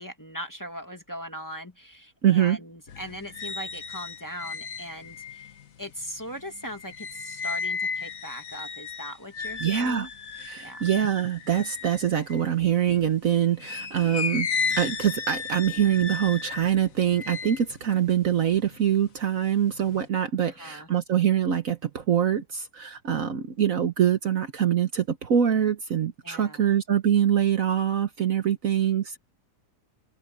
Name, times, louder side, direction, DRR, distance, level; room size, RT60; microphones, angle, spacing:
voice 1, 0.0-5.5 5.8-10.1 10.6-10.8 20.4-20.9 26.2-26.6, equal, 10° left, 2.1 m, -39 dB
voice 2, 2.2-2.6 9.6-10.1 10.4-14.5 14.8-29.2, right 9 dB, 55° right, 1.4 m, -24 dB
sound 1, 2.9-13.0 13.6-19.1 19.5-20.1, left 5 dB, 55° left, 1.6 m, -35 dB
omnidirectional pair, 1.8 m